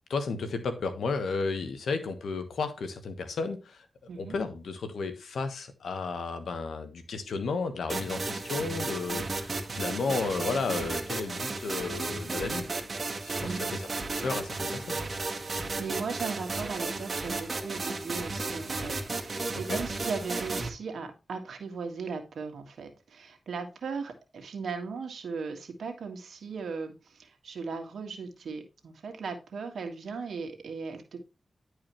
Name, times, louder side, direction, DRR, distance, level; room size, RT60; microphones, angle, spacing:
voice 1, 0.1-3.9 4.2-12.6 13.2-13.9 14.2-15.0 19.7-19.8, left 4 dB, 90° left, 1.2 m, -33 dB
voice 2, 4.1-4.4 13.4-13.6 15.4-31.2, right 5 dB, 85° right, 1.7 m, -37 dB
sound 1, 7.9-20.7, right 3 dB, 55° right, 1.6 m, -34 dB
10.5 x 4.8 x 3.1 m
cardioid pair, 50°, 0 cm